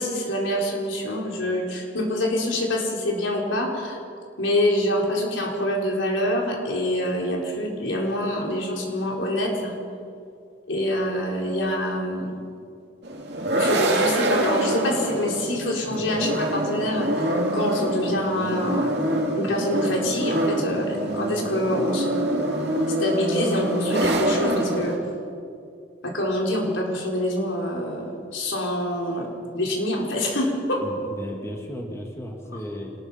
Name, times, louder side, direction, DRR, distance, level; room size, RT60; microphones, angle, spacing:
voice 1, 0.0-4.0 4.4-9.7 10.7-12.4 13.5-19.0 19.3-22.5 23.0-25.0 26.0-29.3 29.5-30.8, left 1 dB, 90° left, 0 dB, 4.5 m, -26 dB
sound 1, 13.0-25.0, right 1 dB, 60° right, 2.9 m, -25 dB
voice 2, 30.8-32.9, equal, 15° left, 1 dB, 2.2 m, -35 dB
26.0 x 19.5 x 5.8 m, 2.4 s
head